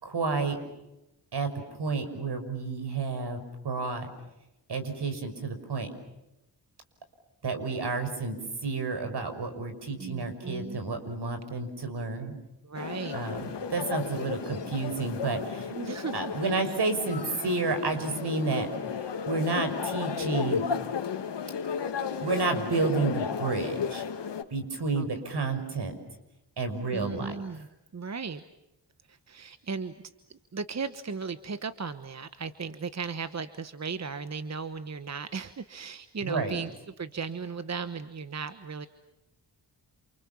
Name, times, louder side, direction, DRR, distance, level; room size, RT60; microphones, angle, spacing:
voice 1, 0.0-0.6 1.3-4.1 4.7-5.9 7.4-12.4 13.1-15.7 16.1-18.7 19.0-20.7 22.2-24.0 24.5-25.9 26.6-27.4 36.2-36.6, right 3 dB, 65° right, 8 dB, 5.9 m, -30 dB
voice 2, 10.0-10.8 12.6-13.2 15.7-16.4 16.6-16.8 18.5-18.7 24.9-25.3 26.9-27.7 27.9-28.4 29.1-29.9 30.3-36.7 37.0-38.9, right 5 dB, 40° right, 11 dB, 1.2 m, -36 dB
sound 1, 12.7-24.4, left 6 dB, 75° left, 2.3 m, -34 dB
29.0 x 28.5 x 7.2 m, 0.90 s
cardioid pair, 85°, 43 cm